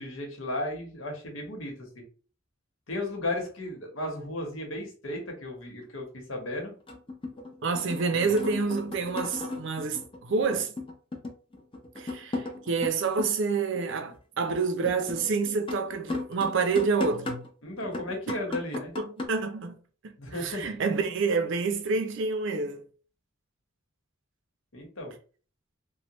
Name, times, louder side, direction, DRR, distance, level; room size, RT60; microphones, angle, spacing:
voice 1, 0.0-2.0 2.9-6.8 8.1-8.4 17.6-18.9 20.2-20.7 24.7-25.1, left 1 dB, 85° left, 1.2 m, -35 dB
sound 1, 5.6-5.7 6.9-13.3 13.8-17.5 17.8-19.3, left 2 dB, 25° left, 0.6 m, -36 dB
voice 2, 7.6-10.7 12.0-17.4 19.0-22.9, right 4 dB, 65° right, 0.5 m, -28 dB
3.2 x 2.2 x 3.0 m
head